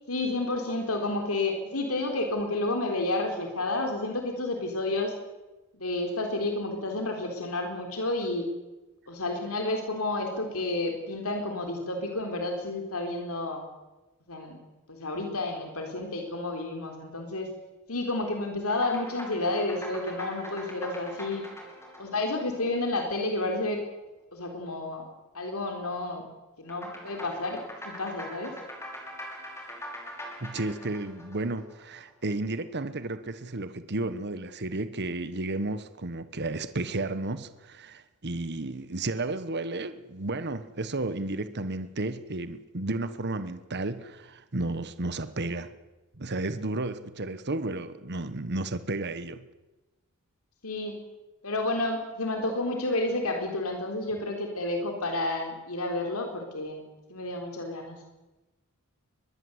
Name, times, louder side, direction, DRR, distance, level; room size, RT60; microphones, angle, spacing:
voice 1, 0.1-5.1 5.7-8.5 9.1-13.6 14.3-14.6 14.9-17.5 17.9-21.4 22.0-23.8 24.3-25.0 25.3-26.2 26.6-27.6 27.8-28.5 50.6-51.0 51.4-56.8 57.1-58.0, left 2 dB, 85° left, 3 dB, 3.8 m, -30 dB
sound 1, 18.7-23.4 26.7-32.1, equal, 15° left, 5.4 m, -43 dB
voice 2, 30.4-45.7 46.2-49.4, right 2 dB, 50° right, 12 dB, 1.3 m, -33 dB
23.5 x 21.0 x 8.1 m, 1.1 s
head